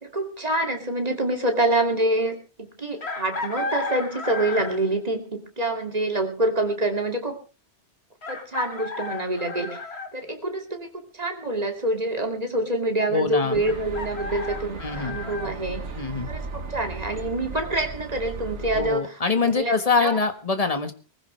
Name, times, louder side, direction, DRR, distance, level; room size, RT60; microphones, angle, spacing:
voice 1, 0.0-7.4 8.3-9.8 10.1-15.8 16.3-20.2, right 1 dB, 35° right, 4 dB, 2.6 m, -26 dB
Chicken rooster, 3.0-4.9 6.6-6.7 8.2-10.1 13.6-15.5, left 3 dB, 65° left, 2.1 m, -33 dB
voice 2, 13.1-13.6 14.8-15.2 16.0-16.3 18.7-20.9, left 4 dB, 35° left, 8 dB, 1.6 m, -24 dB
sound 1, 13.5-18.9, right 4 dB, 90° right, 1.7 m, -36 dB
22.0 x 15.0 x 3.3 m, 0.32 s
omnidirectional pair, 1.1 m